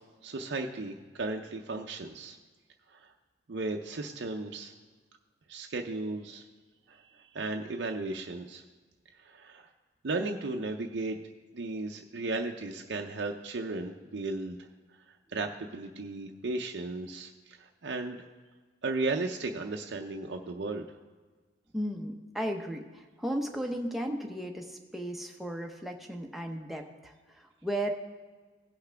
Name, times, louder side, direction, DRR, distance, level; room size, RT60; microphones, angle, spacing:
voice 1, 0.2-2.4 2.9-3.1 3.5-4.7 5.5-6.4 6.9-7.0 7.3-8.6 9.2-9.7 10.0-11.2 11.5-14.6 15.3-18.2 18.8-20.8, right 3 dB, 65° right, 2 dB, 0.6 m, -35 dB
voice 2, 21.7-27.9, equal, ahead, 2 dB, 0.7 m, -35 dB
17.0 x 5.8 x 3.4 m, 1.4 s
head